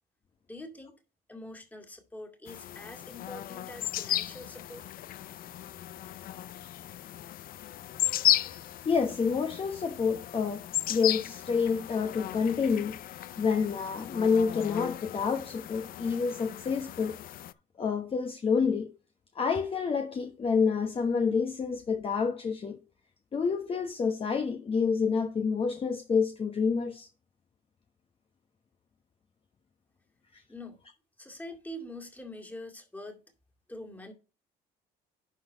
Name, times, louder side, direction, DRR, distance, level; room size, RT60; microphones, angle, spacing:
voice 1, 0.5-1.0 1.3-4.8 30.5-30.8 31.2-33.2 33.7-34.1, left 1 dB, 10° left, 2.2 m, -44 dB
sound 1, 2.5-17.5, left 13 dB, 60° left, 0.5 m, -35 dB
voice 2, 8.4-17.2 17.8-18.9 19.3-22.8 23.3-27.1 30.3-30.4, left 5 dB, 35° left, 1.1 m, -28 dB
11.0 x 4.1 x 4.6 m
cardioid pair, 110°, 17 cm